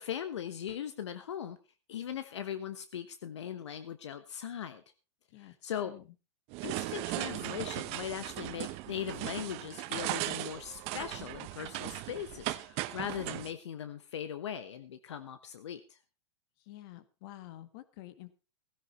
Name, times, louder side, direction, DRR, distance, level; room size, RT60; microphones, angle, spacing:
voice 1, 0.0-1.6 1.9-4.8 5.4-5.9 6.6-16.0, left 9 dB, 80° left, 11 dB, 1.2 m, -39 dB
voice 2, 5.3-6.1 16.6-18.3, left 15 dB, 55° left, 13 dB, 1.7 m, -50 dB
sound 1, 6.5-13.5, right 18 dB, 45° right, 1.0 m, -38 dB
16.5 x 11.0 x 4.3 m, 0.31 s
hypercardioid pair, 115°, 15 cm